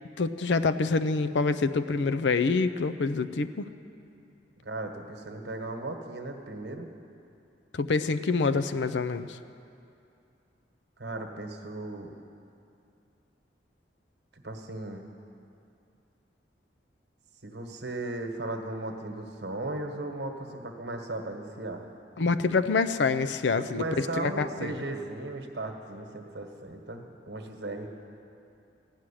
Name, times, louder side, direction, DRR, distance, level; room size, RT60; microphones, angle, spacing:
voice 1, 0.2-3.7 7.7-9.4 22.2-24.7, left 4 dB, 80° left, 12 dB, 0.5 m, -26 dB
voice 2, 4.6-6.9 11.0-12.1 14.3-15.0 17.4-21.9 23.6-27.9, right 2 dB, 70° right, 4 dB, 1.3 m, -36 dB
15.0 x 6.3 x 9.9 m, 2.6 s
head